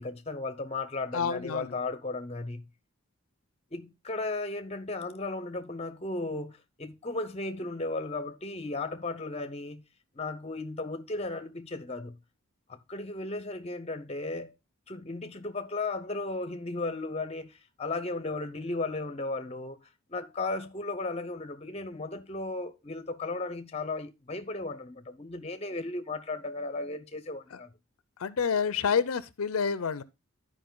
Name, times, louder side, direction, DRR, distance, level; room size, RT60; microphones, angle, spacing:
voice 1, 0.0-2.6 3.7-9.8 10.1-12.2 12.7-14.5 14.9-19.8 20.1-27.7, left 2 dB, 30° left, 0.7 m, -35 dB
voice 2, 1.1-1.7 28.2-30.0, left 6 dB, 80° left, 0.5 m, -28 dB
11.5 x 4.9 x 3.8 m
head